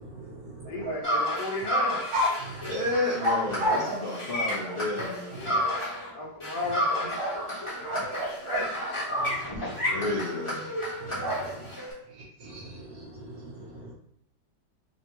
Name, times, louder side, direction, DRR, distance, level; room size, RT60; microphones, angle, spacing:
voice 1, 0.0-0.9 2.4-2.9 3.5-3.6 5.0-5.6 6.6-6.7 7.7-8.1 9.1-10.2 10.7-11.7 12.0-13.9, right 2 dB, 60° right, -4 dB, 1.3 m, -44 dB
voice 2, 0.7-2.1 5.3-7.4 7.8-8.8, left 2 dB, 75° left, -2 dB, 1.4 m, -35 dB
sound 1, 0.7-1.3 1.6-1.7 2.1-2.4 3.2-4.8 7.2-9.3 11.2-11.8, equal, 85° right, 1.4 m, -31 dB
sound 2, 1.0-6.1 6.4-11.9, equal, 25° left, 0.9 m, -31 dB
voice 3, 2.6-5.4 9.6-9.7 9.9-10.6, left 2 dB, 55° left, -7 dB, 0.6 m, -31 dB
3.5 x 2.2 x 2.9 m, 0.69 s
omnidirectional pair, 1.8 m